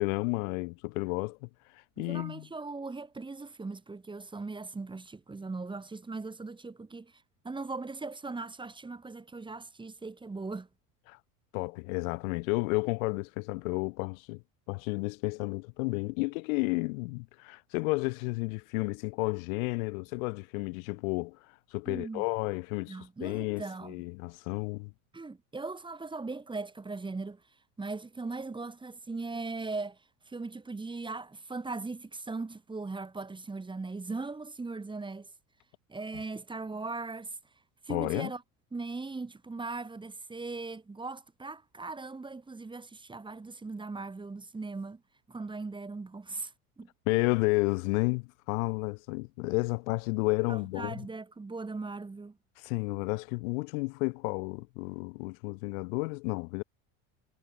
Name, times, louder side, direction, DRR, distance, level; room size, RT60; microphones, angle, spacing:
voice 1, 0.0-2.5 11.1-11.2 11.5-14.4 14.7-21.4 21.7-24.9 37.9-38.3 47.1-51.0 52.6-56.6, left 29 dB, 70° left, 2.6 m, -32 dB
voice 2, 2.0-10.7 21.9-22.2 22.9-24.0 25.1-27.4 27.8-30.0 30.3-35.3 35.9-37.4 37.8-38.4 38.7-45.0 45.3-46.9 50.5-52.4, right 3 dB, 10° right, 2.5 m, -39 dB
supercardioid pair, 125°, 42 cm